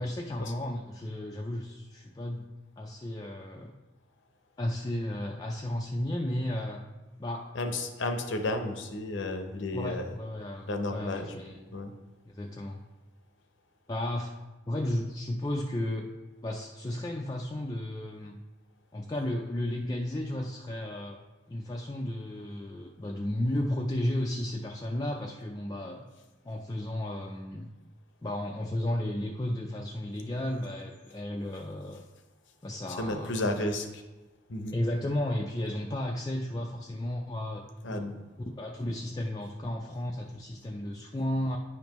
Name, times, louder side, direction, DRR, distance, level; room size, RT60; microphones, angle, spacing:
voice 1, 0.0-2.5 2.8-3.7 4.6-6.8 7.2-7.5 9.7-11.7 12.3-12.8 13.9-14.3 14.7-16.1 16.4-18.4 18.9-21.2 21.5-26.0 26.4-27.7 28.2-32.0 32.6-33.7 34.7-37.6 37.9-38.1 38.6-41.6, left 1 dB, 20° left, 0 dB, 0.3 m, -33 dB
voice 2, 7.5-10.1 10.7-11.3 11.7-11.9 33.0-33.9 34.5-34.8 37.8-38.1, left 2 dB, 75° left, 6 dB, 0.8 m, -32 dB
9.7 x 5.3 x 3.0 m, 1.2 s
head